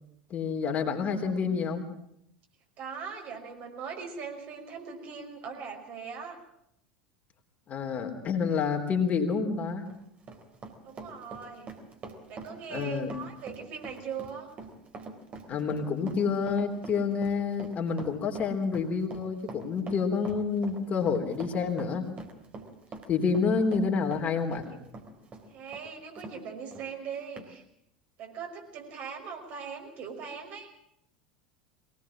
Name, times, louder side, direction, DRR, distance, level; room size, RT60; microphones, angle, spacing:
voice 1, 0.3-1.9 7.7-9.9 12.7-13.1 15.5-22.1 23.1-24.6, left 5 dB, 35° left, 3 dB, 3.6 m, -28 dB
voice 2, 0.9-1.6 2.8-6.4 10.8-11.7 12.3-14.5 24.1-24.2 24.7-24.8 25.5-27.6 28.2-30.7, right 6 dB, 50° right, 2 dB, 5.7 m, -40 dB
Run, 9.7-26.4 26.7-26.8 27.4-27.5, right 3 dB, 35° right, 3.8 m, -44 dB
22.5 x 19.0 x 7.4 m, 0.74 s
figure-of-eight pair, 75°, 4 cm